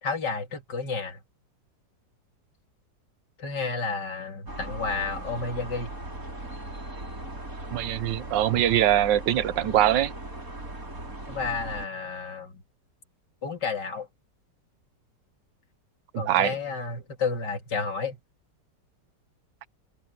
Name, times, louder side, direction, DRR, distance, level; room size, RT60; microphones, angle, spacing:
voice 1, 0.0-1.2 3.4-5.9 11.3-12.6 13.4-14.1 16.2-18.2, left 4 dB, 70° left, 3.2 m, -31 dB
sound 1, 4.5-11.9, right 1 dB, 50° right, 6.5 m, -38 dB
voice 2, 7.7-10.1 16.1-16.6, right 12 dB, 80° right, 1.4 m, -23 dB
omnidirectional pair, 1.9 m